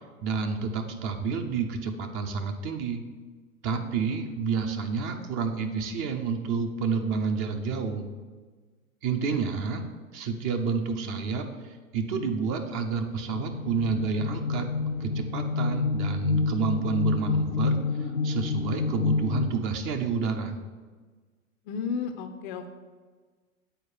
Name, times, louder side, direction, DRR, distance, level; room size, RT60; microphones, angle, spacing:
voice 1, 0.2-3.0 3.6-8.1 9.0-9.8 10.1-14.7 15.0-20.6, right 5 dB, 30° right, 5 dB, 0.8 m, -29 dB
sound 1, 13.3-19.5, left 4 dB, 70° left, 0.8 m, -28 dB
voice 2, 21.7-22.7, left 6 dB, 35° left, 7 dB, 0.6 m, -33 dB
7.9 x 4.5 x 6.5 m, 1.4 s
figure-of-eight pair, 95°, 43 cm